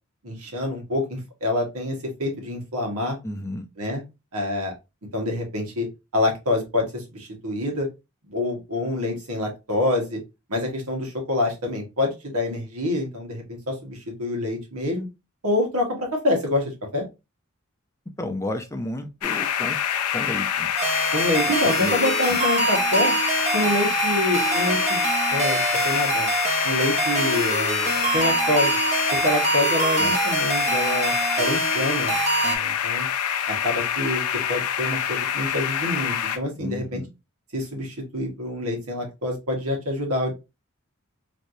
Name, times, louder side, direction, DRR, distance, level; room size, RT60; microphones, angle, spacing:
voice 1, 0.2-3.2 3.8-4.0 4.3-4.7 5.1-5.9 6.1-7.9 8.3-10.2 10.5-15.0 15.4-17.0 21.1-23.1 23.5-26.3 26.6-28.8 29.2-32.1 32.4-33.1 33.5-34.2 34.5-37.0 37.5-40.3, left 1 dB, 85° right, 1.3 m, -26 dB
voice 2, 3.2-3.7 18.2-19.8 20.1-20.7 21.5-22.0 22.3-22.4 30.0-30.2 36.6-37.1, left 1 dB, 15° left, 0.4 m, -32 dB
sound 1, 19.2-36.4, left 9 dB, 90° left, 0.5 m, -26 dB
sound 2, 20.8-32.6, right 4 dB, 30° right, 0.6 m, -25 dB
3.2 x 2.6 x 2.6 m
head